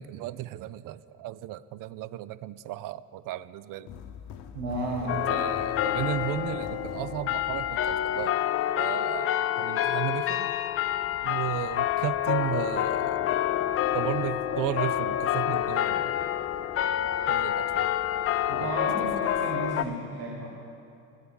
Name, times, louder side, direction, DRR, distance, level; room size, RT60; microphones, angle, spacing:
voice 1, 0.0-3.9 5.0-8.3 8.8-10.5 11.2-13.2 13.9-16.1 17.3-17.9 18.6-18.7, right 13 dB, 50° right, 17 dB, 0.4 m, -35 dB
sound 1, 3.9-9.0, left 7 dB, 65° left, 0.8 m, -45 dB
voice 2, 4.5-5.2 18.5-20.5, right 2 dB, 85° right, -3 dB, 1.4 m, -33 dB
God Rest Ye Merry Gentlemen, 5.1-19.8, left 11 dB, 35° left, 0.4 m, -28 dB
sound 2, 10.7-19.6, left 1 dB, 10° left, 2.1 m, -52 dB
11.0 x 8.0 x 6.3 m, 2.6 s
hypercardioid pair, 65°, 44 cm